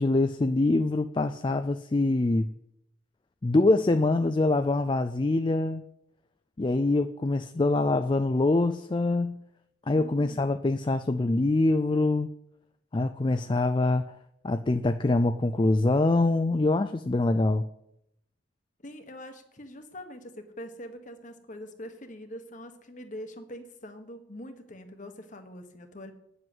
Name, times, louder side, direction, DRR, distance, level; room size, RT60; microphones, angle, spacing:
voice 1, 0.0-2.5 3.4-5.8 6.6-9.4 9.9-12.3 12.9-14.1 14.4-17.6, left 2 dB, 25° left, 9 dB, 0.4 m, -24 dB
voice 2, 9.9-10.6 18.8-26.1, equal, 40° left, 7 dB, 1.4 m, -43 dB
9.6 x 7.6 x 7.9 m, 0.78 s
head